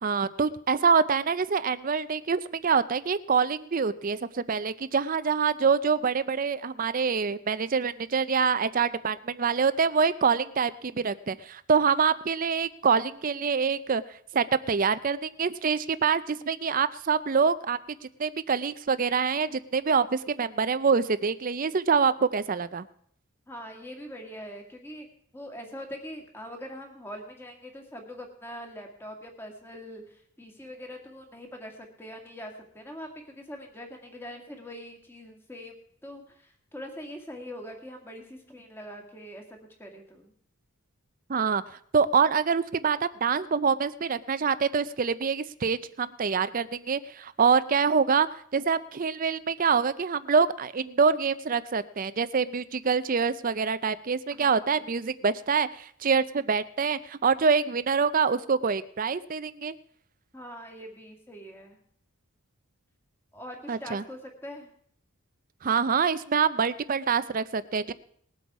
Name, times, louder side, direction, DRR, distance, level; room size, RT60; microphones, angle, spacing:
voice 1, 0.0-14.0 14.3-17.8 18.2-22.9 41.3-41.6 41.9-48.3 48.5-59.8 63.7-64.0 65.6-67.9, right 5 dB, 40° right, 15 dB, 0.5 m, -25 dB
voice 2, 23.5-25.1 25.3-40.3 54.3-54.8 60.3-61.8 63.3-64.7, equal, 10° left, 2 dB, 1.9 m, -43 dB
20.0 x 8.0 x 4.7 m, 0.64 s
head